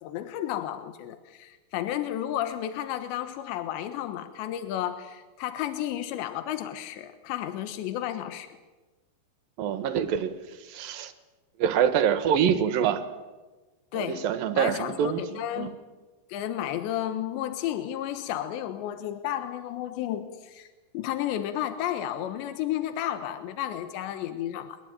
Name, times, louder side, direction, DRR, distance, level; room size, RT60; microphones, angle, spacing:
voice 1, 0.0-8.5 13.9-14.3 14.6-15.7 16.3-20.7 20.9-24.8, left 11 dB, 85° left, 9 dB, 3.5 m, -32 dB
voice 2, 9.6-11.1 11.6-13.0 13.9-15.8, right 8 dB, 65° right, 10 dB, 2.7 m, -26 dB
23.0 x 20.5 x 9.0 m, 1.2 s
omnidirectional pair, 5.0 m